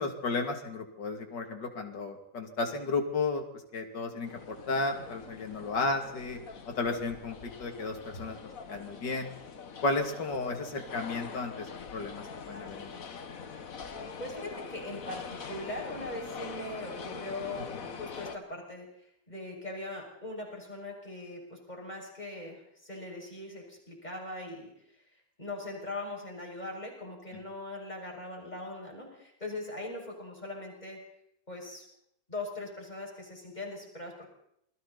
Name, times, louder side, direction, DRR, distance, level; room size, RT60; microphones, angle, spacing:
voice 1, 0.0-3.4 3.7-6.4 6.7-8.4 8.7-9.3 9.8-12.9, left 3 dB, 65° left, 4 dB, 3.3 m, -33 dB
sound 1, 4.2-18.4, left 5 dB, 50° left, 1.7 m, -44 dB
voice 2, 14.2-18.9 19.3-24.7 25.4-31.0 31.5-31.8 32.3-34.3, left 2 dB, 20° left, -1 dB, 6.5 m, -40 dB
28.5 x 22.5 x 4.2 m, 0.73 s
omnidirectional pair, 2.0 m